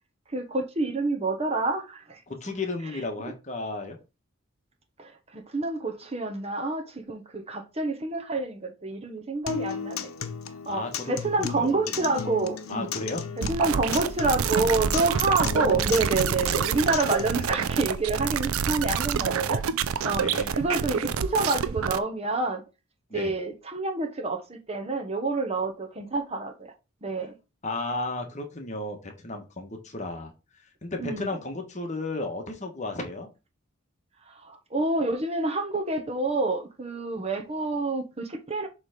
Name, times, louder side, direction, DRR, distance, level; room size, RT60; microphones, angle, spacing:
voice 1, 0.3-2.2 3.2-3.3 5.0-10.1 10.7-12.9 13.4-19.6 20.0-20.2 20.5-22.6 23.1-26.7 27.0-27.4 31.0-31.3 34.3-38.7, right 3 dB, 30° right, 1.0 m, -28 dB
voice 2, 2.3-4.0 10.7-11.2 11.6-12.2 12.7-13.2 20.2-20.5 23.1-23.3 27.6-30.3 30.8-33.3, left 2 dB, 35° left, 1.3 m, -34 dB
Acoustic guitar, 9.5-17.5, left 6 dB, 85° left, 0.8 m, -35 dB
sound 1, 13.4-22.0, right 7 dB, 85° right, 0.5 m, -27 dB
7.0 x 3.3 x 5.1 m
head